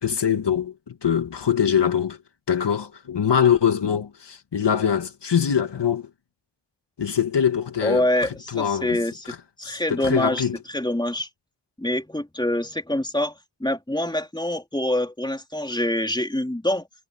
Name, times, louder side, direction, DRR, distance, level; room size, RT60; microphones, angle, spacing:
voice 1, 0.0-2.2 2.5-6.1 7.0-8.0 8.5-9.0 9.6-10.6, left 8 dB, 80° left, 2.1 m, -23 dB
voice 2, 7.8-9.2 9.6-11.3 11.8-13.3 13.6-16.9, left 1 dB, 10° left, 3.8 m, -25 dB
cardioid pair, 50°, 41 cm